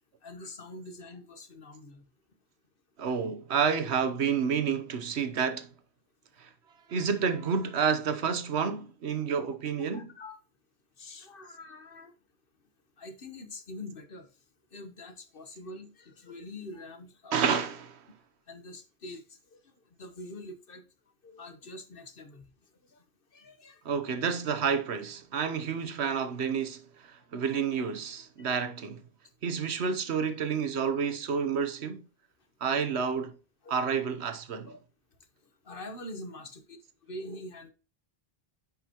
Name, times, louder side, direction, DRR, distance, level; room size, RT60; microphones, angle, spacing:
voice 1, 0.2-2.0 3.0-3.1 9.9-10.4 11.0-12.1 13.0-14.3 14.7-17.4 18.5-19.6 20.0-20.8 21.2-22.5 22.9-23.0 23.3-23.8 28.4-28.5 33.6-33.9 34.7-34.8 35.6-36.8 37.1-37.7, left 1 dB, 60° left, 1.3 m, -45 dB
voice 2, 3.0-5.7 6.4-6.5 6.9-10.1 17.3-18.0 23.8-29.0 29.4-32.0 32.6-33.4 33.7-34.7, right 6 dB, 80° right, 1.2 m, -29 dB
9.9 x 5.4 x 2.9 m
omnidirectional pair, 1.1 m